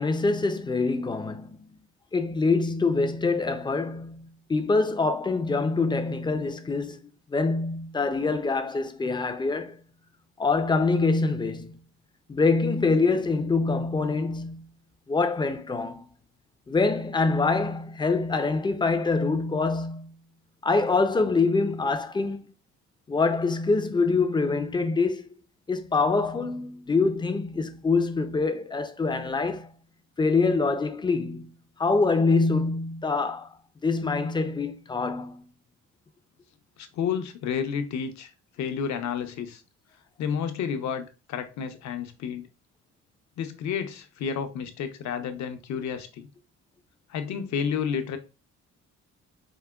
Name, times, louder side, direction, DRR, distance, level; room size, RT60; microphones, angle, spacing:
voice 1, 0.0-1.8 2.1-7.0 7.3-9.8 10.4-11.8 12.3-14.6 15.1-16.1 16.7-20.1 20.6-22.5 23.1-25.3 25.7-29.7 30.2-31.5 31.8-33.5 33.8-35.5, left 3 dB, 15° left, 0.4 m, -25 dB
voice 2, 36.8-38.3 38.6-39.6 40.2-42.5 43.4-46.3 47.1-48.2, left 7 dB, 70° left, 0.6 m, -31 dB
4.7 x 2.1 x 2.3 m
cardioid pair, 90°, 30 cm